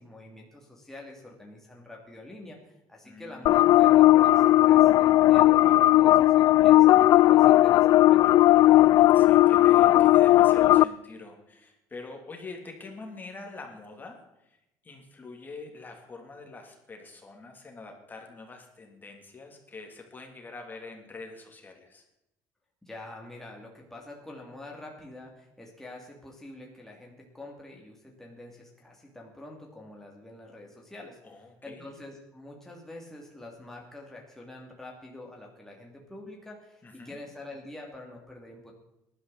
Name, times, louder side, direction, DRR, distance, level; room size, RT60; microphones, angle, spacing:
voice 1, 0.0-8.2 22.8-38.7, left 2 dB, 5° left, -1 dB, 2.8 m, -46 dB
voice 2, 3.0-3.7 8.7-14.6 14.8-22.0 31.2-31.9 36.8-37.2, left 3 dB, 25° left, 2 dB, 3.1 m, -45 dB
sound 1, 3.5-10.8, left 15 dB, 60° left, 0.4 m, -17 dB
18.0 x 12.0 x 4.2 m, 0.88 s
cardioid pair, 110°, 8 cm